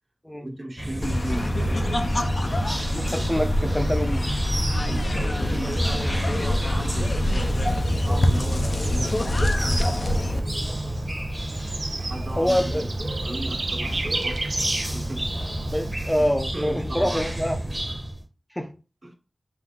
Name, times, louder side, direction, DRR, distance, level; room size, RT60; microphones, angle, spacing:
voice 1, 0.4-1.9 4.9-7.5 8.0-11.1 12.0-12.9 13.2-15.7 16.2-16.3 16.5-17.4 19.0-19.1, right 1 dB, 45° right, 1.4 m, -37 dB
sound 1, 0.8-18.2, right 1 dB, 10° right, 1.1 m, -31 dB
sound 2, 1.0-10.4, left 1 dB, 50° left, 0.6 m, -25 dB
voice 2, 2.9-4.3 12.4-12.9 15.7-17.6 18.6-18.7, equal, 10° left, 0.7 m, -25 dB
Bird / Insect, 7.4-15.9, right 2 dB, 70° right, 0.7 m, -34 dB
5.8 x 2.2 x 3.7 m
wide cardioid pair, 55°, 0 cm